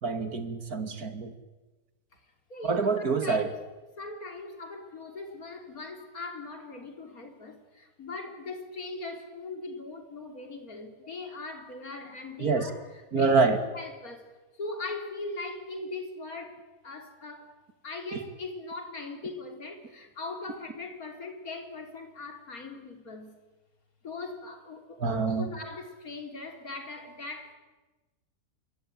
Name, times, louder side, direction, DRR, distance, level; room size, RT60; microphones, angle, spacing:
voice 1, 0.0-1.3 2.6-3.5 12.4-12.7 13.1-13.6 18.1-18.2 25.0-25.5, right 4 dB, 65° right, 2.8 m, -26 dB
voice 2, 2.5-3.5 4.0-12.8 13.1-13.3 13.7-17.5 17.8-23.3 24.0-25.0 25.3-27.5, left 3 dB, 60° left, 3.7 m, -40 dB
26.5 x 21.5 x 9.1 m
omnidirectional pair, 1.7 m